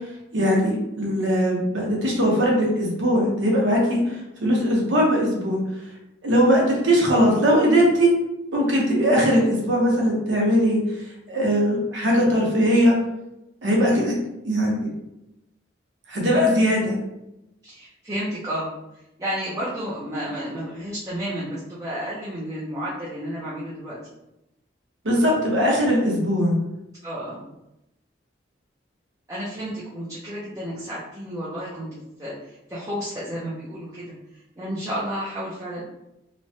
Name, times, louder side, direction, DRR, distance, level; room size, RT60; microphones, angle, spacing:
voice 1, 0.3-5.6 6.2-8.2 8.5-10.8 11.3-12.9 13.6-14.2 14.4-14.9 16.1-17.0 25.0-26.6, equal, 85° right, -2 dB, 0.9 m, -20 dB
voice 2, 17.6-24.1 27.0-27.5 29.3-31.9 32.2-35.8, equal, 20° right, -8 dB, 0.5 m, -32 dB
3.0 x 2.1 x 2.7 m, 0.89 s
head